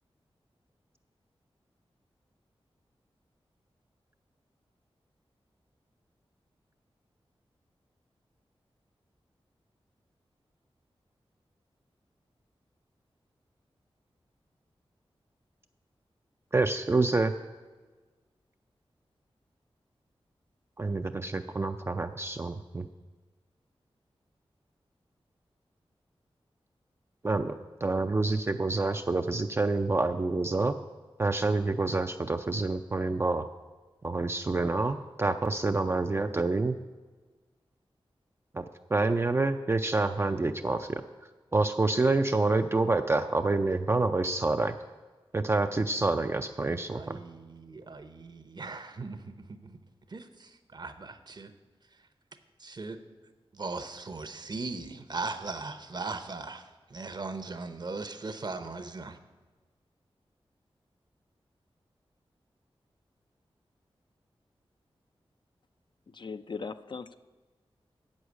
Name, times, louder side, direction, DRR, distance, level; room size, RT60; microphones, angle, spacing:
voice 1, 16.5-17.3 20.8-22.9 27.2-30.7 31.2-33.5 34.0-36.8 38.5-38.6 38.9-41.0 41.5-44.8 45.3-47.2, right 3 dB, 25° right, 6 dB, 0.4 m, -27 dB
voice 2, 46.9-49.8 50.1-51.5 52.6-53.0 53.5-59.2, right 3 dB, 45° right, 10 dB, 0.7 m, -39 dB
voice 3, 66.1-67.2, left 5 dB, 50° left, 11 dB, 0.4 m, -39 dB
8.0 x 6.4 x 8.1 m, 1.3 s
wide cardioid pair, 100°, 10 cm